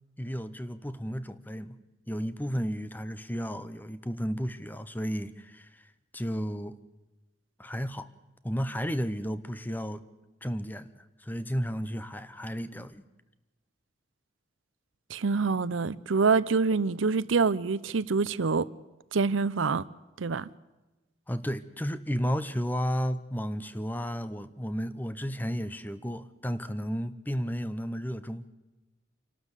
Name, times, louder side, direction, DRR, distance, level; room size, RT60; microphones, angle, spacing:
voice 1, 0.2-1.8 2.1-5.8 6.1-6.8 7.6-8.1 8.4-10.0 10.4-13.0 21.3-28.5, equal, 10° left, 0.7 m, -33 dB
voice 2, 15.1-18.7 19.1-19.9 20.2-20.5, right 4 dB, 85° right, 0.6 m, -26 dB
27.0 x 12.5 x 8.2 m
head